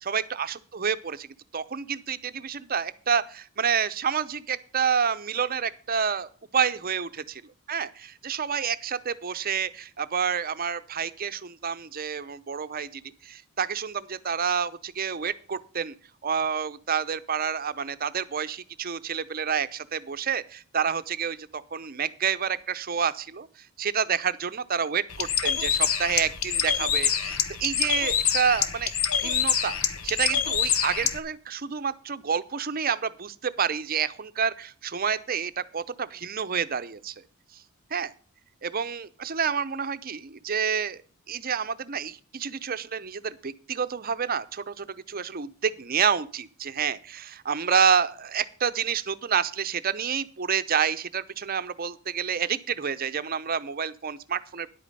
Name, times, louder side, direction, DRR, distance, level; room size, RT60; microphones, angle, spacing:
voice 1, 0.0-7.4 7.7-15.9 16.2-23.5 23.8-29.8 30.0-37.1 37.9-38.1 38.6-41.0 41.3-54.7, right 7 dB, 40° right, 13 dB, 0.7 m, -28 dB
Bird, 25.1-31.2, left 8 dB, 75° left, 1.1 m, -26 dB
10.5 x 8.5 x 5.4 m, 0.41 s
head